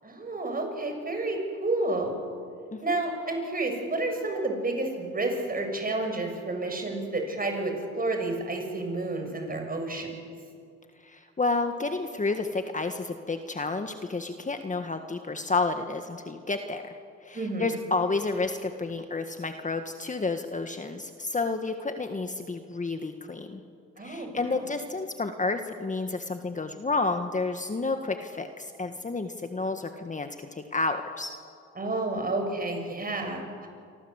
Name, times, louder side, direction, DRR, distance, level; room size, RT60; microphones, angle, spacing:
voice 1, 0.0-2.1 2.8-10.1 17.3-17.8 24.0-24.6 31.8-33.7, right 2 dB, 30° right, 4 dB, 7.0 m, -30 dB
voice 2, 11.0-23.6 24.0-31.3, left 3 dB, 25° left, 6 dB, 1.6 m, -30 dB
27.5 x 25.0 x 8.2 m, 2.3 s
cardioid pair, 90°, 30 cm